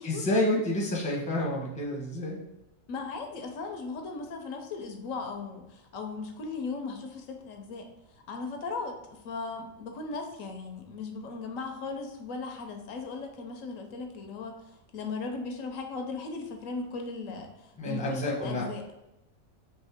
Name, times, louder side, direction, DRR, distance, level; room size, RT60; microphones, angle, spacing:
voice 1, 0.0-2.4 17.8-18.6, left 1 dB, 5° left, -3 dB, 0.8 m, -29 dB
voice 2, 2.9-7.9 8.3-18.8, left 4 dB, 75° left, 4 dB, 1.0 m, -37 dB
4.4 x 3.1 x 3.5 m, 0.90 s
omnidirectional pair, 1.4 m